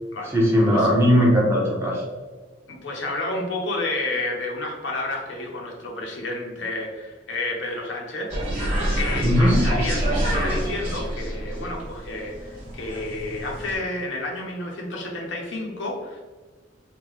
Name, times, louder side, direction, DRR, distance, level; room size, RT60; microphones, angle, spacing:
voice 1, 0.3-2.0 9.2-9.6, equal, 15° right, -3 dB, 0.7 m, -18 dB
voice 2, 2.7-8.7 9.0-16.2, left 2 dB, 65° left, 0 dB, 0.7 m, -30 dB
sound 1, 8.3-13.8, right 1 dB, 30° right, 1.3 m, -27 dB
3.6 x 2.2 x 3.1 m, 1.3 s
head